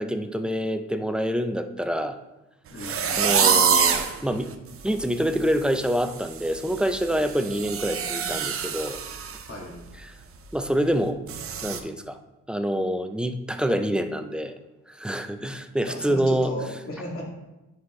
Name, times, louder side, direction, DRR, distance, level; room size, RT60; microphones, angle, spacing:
voice 1, 0.0-2.2 3.1-4.5 4.8-9.0 10.0-10.1 10.5-11.2 11.6-12.2 12.5-14.5 14.9-16.5, equal, 5° right, 8 dB, 0.4 m, -26 dB
voice 2, 2.7-3.4 9.5-9.8 15.8-17.3, equal, 50° left, -2 dB, 2.1 m, -36 dB
sound 1, 2.8-4.1 4.7-4.8 5.2-5.5 5.7-9.4 9.7-9.9 10.3-10.4 11.3-11.8, right 7 dB, 50° right, 0.7 m, -25 dB
9.6 x 4.2 x 3.1 m, 1.0 s
cardioid pair, 90°, 30 cm